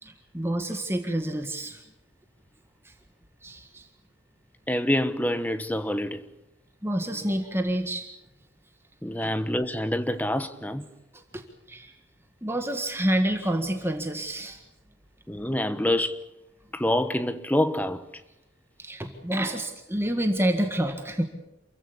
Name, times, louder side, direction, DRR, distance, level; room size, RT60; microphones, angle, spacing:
voice 1, 0.0-1.8 2.8-2.9 3.4-3.9 6.8-8.1 9.2-9.3 11.1-11.4 11.7-11.9 12.4-14.6 18.8-21.2, right 1 dB, 10° right, 1.7 m, -28 dB
voice 2, 4.7-6.2 9.0-10.9 15.3-16.2 16.7-18.0, left 1 dB, 10° left, 1.2 m, -26 dB
28.0 x 15.5 x 8.4 m
head